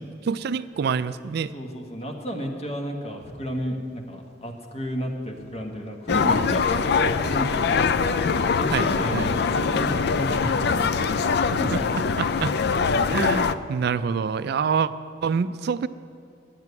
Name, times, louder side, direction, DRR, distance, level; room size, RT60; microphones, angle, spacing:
voice 1, 0.3-1.5 8.7-8.8 9.1-9.3 12.2-12.5 13.1-14.9 15.2-15.9, right 6 dB, 60° right, 14 dB, 0.3 m, -26 dB
voice 2, 1.5-7.8 8.4-12.4, equal, 35° left, 3 dB, 1.4 m, -32 dB
sound 1, 6.1-13.5, left 5 dB, 60° left, 0.4 m, -23 dB
10.5 x 7.5 x 9.4 m, 2.4 s
head